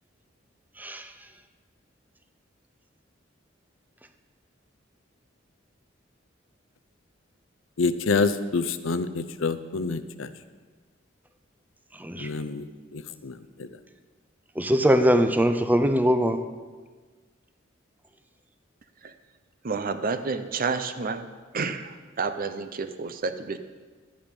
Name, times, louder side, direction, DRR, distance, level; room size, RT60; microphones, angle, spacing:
voice 1, 0.8-1.1 11.9-12.4 14.5-16.4, equal, 10° right, 8 dB, 0.6 m, -22 dB
voice 2, 7.8-10.3 12.2-12.6 12.9-13.4, left 4 dB, 85° left, 12 dB, 0.6 m, -27 dB
voice 3, 19.6-21.3 21.5-23.6, right 4 dB, 50° right, 10 dB, 0.7 m, -30 dB
12.0 x 10.0 x 5.3 m, 1.4 s
head